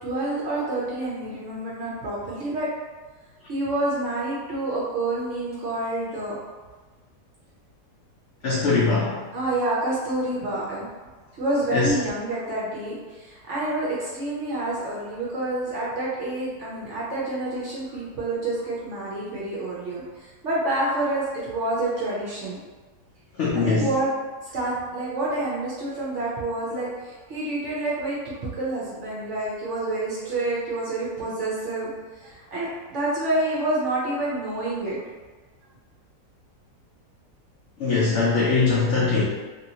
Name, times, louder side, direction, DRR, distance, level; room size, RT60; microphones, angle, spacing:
voice 1, 0.0-2.7 3.5-6.4 9.3-10.9 11.4-22.6 23.6-24.1 24.5-35.0, right 2 dB, 65° right, -7 dB, 0.8 m, -28 dB
voice 2, 8.4-9.2 11.7-11.9 23.4-23.9 37.8-39.2, left 4 dB, 80° left, -5 dB, 0.6 m, -21 dB
2.8 x 2.7 x 2.7 m, 1.3 s
omnidirectional pair, 1.8 m